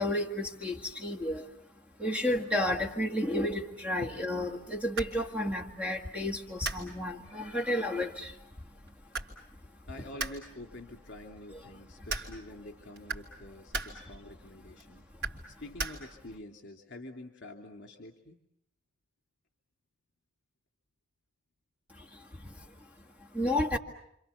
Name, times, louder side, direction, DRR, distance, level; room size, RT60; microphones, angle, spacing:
voice 1, 0.0-9.2 9.5-9.9 11.6-12.1 14.8-15.6 21.9-23.8, left 1 dB, 5° right, 2 dB, 1.9 m, -33 dB
sound 1, 4.4-16.4, right 3 dB, 70° right, 3.4 m, -42 dB
voice 2, 9.9-15.0 15.5-18.4, left 1 dB, 55° left, 3 dB, 2.9 m, -47 dB
29.0 x 26.5 x 7.0 m, 0.77 s
head